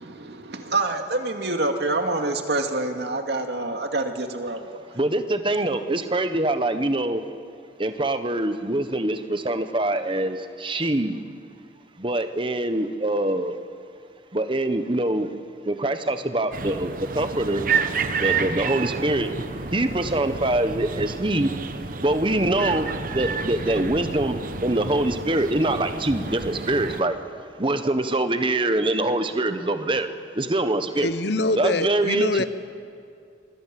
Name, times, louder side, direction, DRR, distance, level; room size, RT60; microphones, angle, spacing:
voice 1, 0.0-4.8, right 2 dB, 65° right, 4 dB, 2.3 m, -27 dB
voice 2, 5.0-7.2 7.8-11.2 12.0-13.5 14.3-15.3 15.7-17.6 18.2-19.3 19.7-21.5 22.0-27.2 27.6-30.1 30.4-31.1 31.6-32.4, right 1 dB, 30° right, 9 dB, 1.3 m, -24 dB
sound 1, 16.5-27.0, right 5 dB, 50° right, 1.1 m, -30 dB
voice 3, 31.0-32.4, left 2 dB, 65° left, 12 dB, 1.1 m, -24 dB
28.0 x 24.0 x 7.7 m, 2.4 s
head